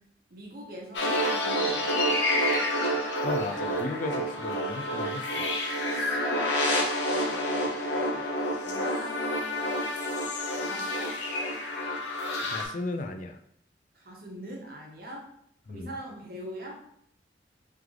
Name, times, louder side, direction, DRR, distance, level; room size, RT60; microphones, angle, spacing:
voice 1, 0.3-1.9 5.9-6.5 7.1-8.2 8.6-9.6 10.5-11.1 13.9-15.2 15.7-16.8, equal, 55° right, -1 dB, 1.0 m, -42 dB
sound 1, 0.9-12.6, equal, 85° left, 0.8 m, -28 dB
voice 2, 3.2-5.4 12.4-13.4 15.7-15.9, left 3 dB, 45° left, 5 dB, 0.4 m, -35 dB
3.2 x 3.1 x 3.7 m, 0.70 s
head